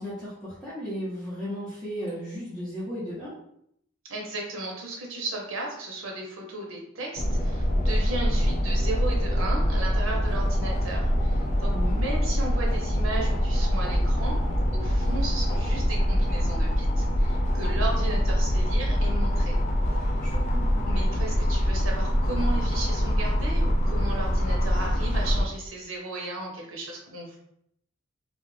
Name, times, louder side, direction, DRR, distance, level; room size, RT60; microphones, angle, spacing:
voice 1, 0.0-3.3 11.7-12.0 20.2-20.9, equal, ahead, -13 dB, 0.9 m, -35 dB
voice 2, 4.0-14.4 14.7-19.6 20.8-27.4, right 2 dB, 70° right, -1 dB, 0.8 m, -35 dB
sound 1, 7.2-25.5, equal, 35° left, 0.3 m, -24 dB
2.4 x 2.1 x 3.1 m, 0.73 s
head